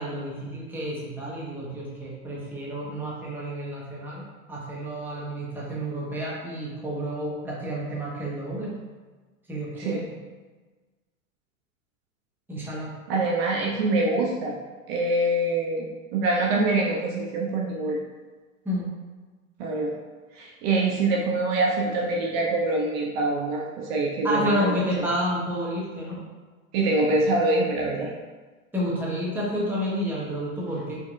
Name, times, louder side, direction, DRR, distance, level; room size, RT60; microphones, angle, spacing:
voice 1, 0.0-4.2 4.5-8.7 9.5-10.0 12.5-12.9 18.6-18.9 24.2-26.2 28.7-31.0, equal, 5° right, -6 dB, 0.8 m, -30 dB
voice 2, 13.1-14.5 14.9-15.9 16.1-18.0 19.6-19.9 20.3-24.7 26.7-28.1, right 2 dB, 50° right, -2 dB, 0.6 m, -24 dB
4.5 x 2.8 x 2.3 m, 1.3 s
hypercardioid pair, 105°, 41 cm